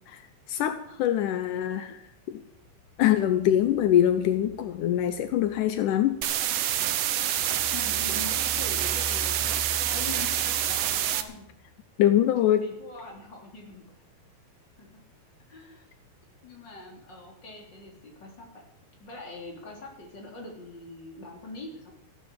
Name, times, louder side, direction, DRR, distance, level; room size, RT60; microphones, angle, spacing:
voice 1, 0.5-2.0 2.3-2.4 3.0-6.2 12.0-12.7, left 11 dB, 80° left, 9 dB, 1.8 m, -23 dB
sound 1, 2.6-6.5 6.9-11.4, equal, 5° left, 2.8 m, -44 dB
sound 2, 6.2-11.2, right 11 dB, 70° right, 2.2 m, -27 dB
voice 2, 7.7-11.5 12.4-13.8 14.8-14.9 15.5-15.9 16.4-18.5 19.0-21.9, left 2 dB, 25° left, 0 dB, 3.8 m, -43 dB
15.0 x 12.0 x 7.6 m, 0.76 s
omnidirectional pair, 4.8 m